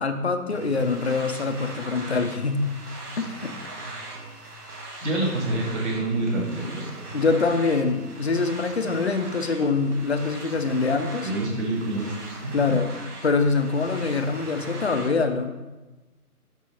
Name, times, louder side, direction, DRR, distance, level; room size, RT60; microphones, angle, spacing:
voice 1, 0.0-2.6 3.2-3.5 7.1-11.3 12.5-12.9 13.2-15.5, left 4 dB, 50° left, 7 dB, 0.5 m, -24 dB
sound 1, 0.5-15.1, right 2 dB, 85° right, 1.5 m, -40 dB
voice 2, 5.0-6.9 11.2-12.1 12.4-12.5, right 2 dB, 50° right, -3 dB, 2.0 m, -27 dB
6.0 x 4.7 x 4.1 m, 1.1 s
figure-of-eight pair, 165°, 45 cm